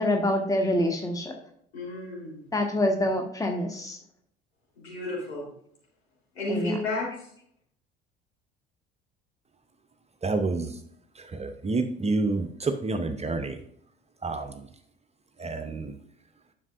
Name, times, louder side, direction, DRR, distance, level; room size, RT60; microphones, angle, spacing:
voice 1, 0.0-1.3 2.5-4.0 6.5-6.7, left 1 dB, 10° left, 3 dB, 1.3 m, -26 dB
voice 2, 1.7-2.5 4.8-5.4 6.3-7.3, left 2 dB, 75° left, -5 dB, 3.6 m, -32 dB
voice 3, 10.2-10.7 11.4-13.6 14.2-14.5 15.4-15.9, right 3 dB, 20° right, 8 dB, 0.7 m, -28 dB
11.0 x 6.3 x 2.5 m, 0.66 s
figure-of-eight pair, 55°, 32 cm